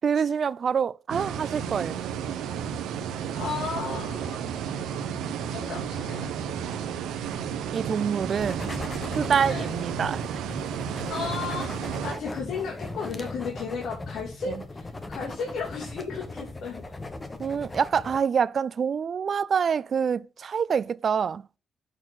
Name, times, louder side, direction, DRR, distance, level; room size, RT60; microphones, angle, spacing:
voice 1, 0.0-2.0 7.7-8.7 9.2-10.2 14.5-14.6 17.4-21.4, right 7 dB, 50° right, 0.4 m, -26 dB
sound 1, 1.1-12.1, right 8 dB, 85° right, 1.0 m, -32 dB
voice 2, 3.4-4.4 5.5-6.3 9.5-9.8 11.1-11.8 12.0-16.8, left 5 dB, 65° left, 2.5 m, -34 dB
sound 2, 8.4-18.2, left 2 dB, 20° left, 1.2 m, -38 dB
7.8 x 4.4 x 6.0 m
cardioid pair, 90°, 0 cm